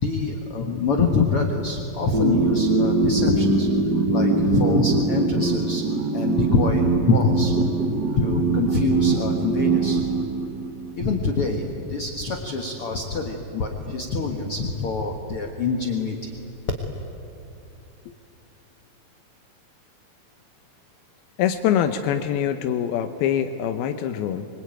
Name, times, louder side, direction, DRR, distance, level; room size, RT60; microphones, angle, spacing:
voice 1, 0.0-3.7 4.1-5.8 6.1-7.7 8.2-10.1 11.0-16.4, left 3 dB, 50° left, 2 dB, 2.0 m, -25 dB
sound 1, 2.1-11.1, right 3 dB, 80° right, 0.9 m, -22 dB
voice 2, 21.4-24.5, left 9 dB, 90° left, 7 dB, 2.8 m, -24 dB
25.0 x 24.5 x 9.1 m, 2.8 s
omnidirectional pair, 4.3 m